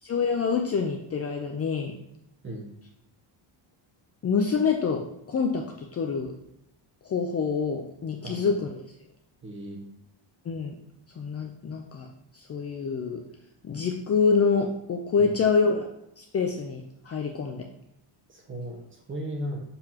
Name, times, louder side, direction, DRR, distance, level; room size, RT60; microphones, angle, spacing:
voice 1, 0.0-1.9 4.2-6.3 7.0-8.8 10.5-10.8 11.2-12.1 12.3-13.2 13.6-15.9 16.2-17.7, left 5 dB, 30° left, 2 dB, 0.5 m, -26 dB
voice 2, 8.2-8.6 9.4-9.8 15.2-15.3 18.3-19.6, right 1 dB, 25° right, 1 dB, 1.3 m, -36 dB
6.8 x 5.8 x 2.9 m, 0.79 s
cardioid pair, 155°, 49 cm